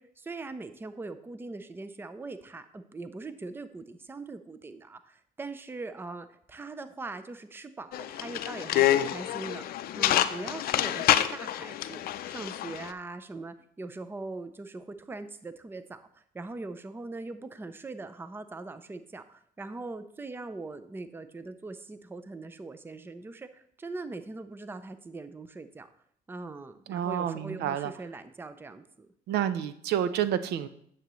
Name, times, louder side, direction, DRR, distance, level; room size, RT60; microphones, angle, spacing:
voice 1, 0.0-25.9 26.3-29.1, right 3 dB, 15° right, 11 dB, 0.5 m, -41 dB
sound 1, 7.9-12.9, left 12 dB, 60° left, 0.5 m, -27 dB
voice 2, 26.9-27.9 29.3-30.7, right 10 dB, 75° right, 12 dB, 0.6 m, -29 dB
9.3 x 7.4 x 3.1 m, 0.66 s
cardioid pair, 110°, 17 cm